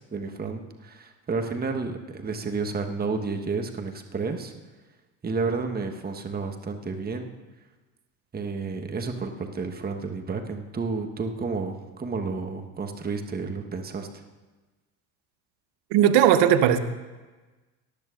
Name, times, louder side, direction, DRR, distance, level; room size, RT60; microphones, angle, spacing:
voice 1, 0.1-4.5 5.2-7.3 8.3-14.2, right 4 dB, 20° right, 4 dB, 1.3 m, -31 dB
voice 2, 15.9-16.8, right 10 dB, 60° right, 9 dB, 1.1 m, -18 dB
18.5 x 12.0 x 2.5 m, 1.2 s
hypercardioid pair, 70°, 47 cm